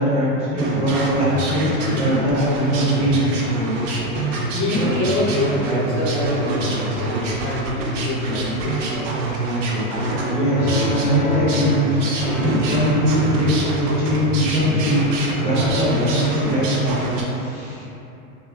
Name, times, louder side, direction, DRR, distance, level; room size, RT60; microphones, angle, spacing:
voice 1, 0.0-3.1 4.2-4.3 10.3-15.0 15.4-17.0 17.3-17.8, equal, 15° right, -9 dB, 0.7 m, -21 dB
sound 1, 0.6-17.2, right 2 dB, 60° right, 0.6 m, -25 dB
voice 2, 4.5-9.1, left 1 dB, 20° left, -13 dB, 0.4 m, -25 dB
sound 2, 9.9-15.3 15.6-15.8, left 1 dB, 90° left, 0.6 m, -30 dB
3.0 x 2.1 x 2.2 m, 2.9 s
hypercardioid pair, 125°, 42 cm